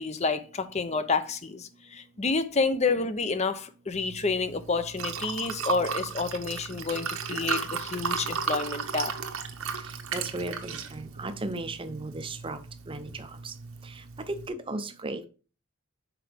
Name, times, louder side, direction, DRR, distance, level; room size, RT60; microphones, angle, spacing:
voice 1, 0.0-9.1, left 4 dB, 30° left, 0.6 m, -29 dB
Liquid, 3.9-14.5, right 6 dB, 75° right, 1.0 m, -35 dB
voice 2, 10.1-12.6 12.9-13.5 13.8-15.3, right 2 dB, 25° right, 0.6 m, -36 dB
6.0 x 4.6 x 5.0 m
head